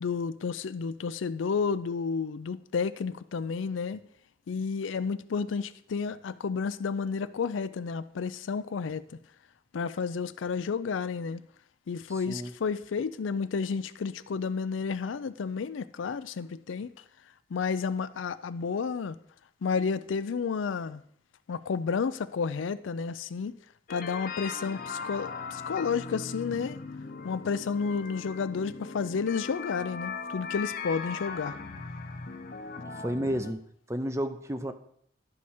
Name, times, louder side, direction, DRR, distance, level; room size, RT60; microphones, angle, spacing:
voice 1, 0.0-4.0 4.5-9.0 9.7-11.4 11.9-16.9 17.5-19.2 19.6-21.0 21.5-23.5 23.9-26.8 27.2-31.5, left 5 dB, 85° left, 0.4 m, -31 dB
voice 2, 12.1-12.5 32.9-33.6 33.9-34.7, equal, 15° right, 0.5 m, -32 dB
sound 1, 23.9-33.5, left 4 dB, 45° left, 0.7 m, -39 dB
12.0 x 4.8 x 4.3 m
head